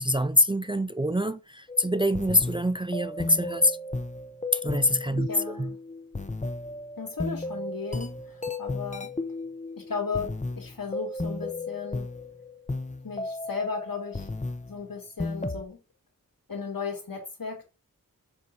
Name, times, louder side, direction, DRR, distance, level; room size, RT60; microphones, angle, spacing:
voice 1, 0.0-3.8 4.5-5.3 5.6-5.7, left 1 dB, 15° right, 0.3 m, -25 dB
sound 1, 1.7-14.8 15.2-15.7, left 2 dB, 20° left, 0.8 m, -34 dB
voice 2, 5.0-5.8 7.0-9.1 9.8-12.1 13.0-14.3 14.7-15.8 16.5-17.6, left 5 dB, 80° left, 2.4 m, -35 dB
6.9 x 3.9 x 4.6 m
wide cardioid pair, 70°, 34 cm